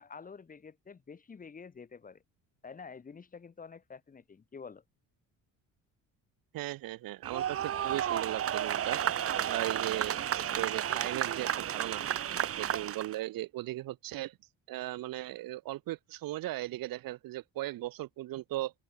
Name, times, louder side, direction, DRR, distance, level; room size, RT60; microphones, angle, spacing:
voice 1, 0.0-2.2 2.6-4.8, left 5 dB, 25° left, 4.2 m, -48 dB
voice 2, 6.5-9.0 9.5-12.0 12.6-14.4 14.7-18.7, right 16 dB, 90° right, 3.3 m, -37 dB
sound 1, 7.2-13.2, right 10 dB, 45° right, 1.6 m, -32 dB
open air
cardioid pair, 170°, 33 cm